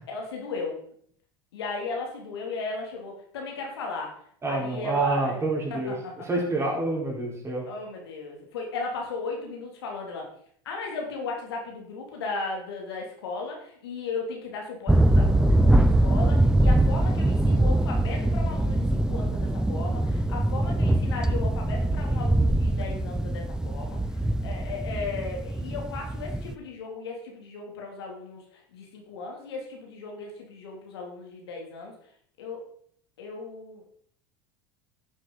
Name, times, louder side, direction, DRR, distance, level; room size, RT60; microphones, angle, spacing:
voice 1, 0.1-0.8 1.5-4.2 4.5-6.1 7.7-10.3 10.6-28.4 28.7-31.9 32.4-32.6 33.2-33.8, left 4 dB, 85° left, 0 dB, 2.8 m, -36 dB
voice 2, 4.4-5.9 6.3-7.6, right 2 dB, 20° right, -2 dB, 4.1 m, -27 dB
sound 1, 14.9-26.5, right 1 dB, 5° right, 0.6 m, -23 dB
11.0 x 7.4 x 4.0 m, 0.62 s
hypercardioid pair, 90°, 13 cm